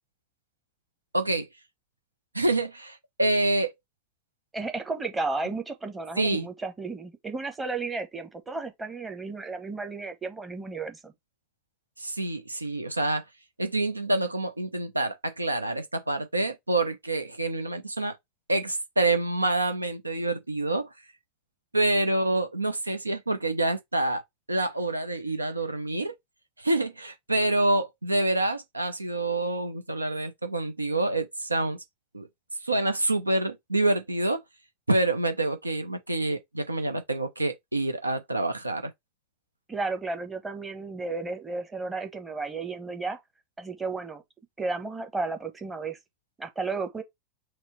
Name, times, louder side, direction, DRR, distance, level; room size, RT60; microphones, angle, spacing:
voice 1, 1.1-1.5 2.3-3.7 6.2-6.5 12.0-13.2 13.6-18.2 18.5-20.9 21.7-24.2 24.5-26.1 26.6-31.8 32.1-32.3 32.6-34.4 34.9-38.9, right 2 dB, 80° right, 0.6 m, -27 dB
voice 2, 4.5-11.1 39.7-43.2 43.6-44.2 44.6-46.0 46.4-47.0, right 3 dB, 15° right, 0.9 m, -33 dB
4.3 x 2.1 x 4.4 m
figure-of-eight pair, 90°, 0 cm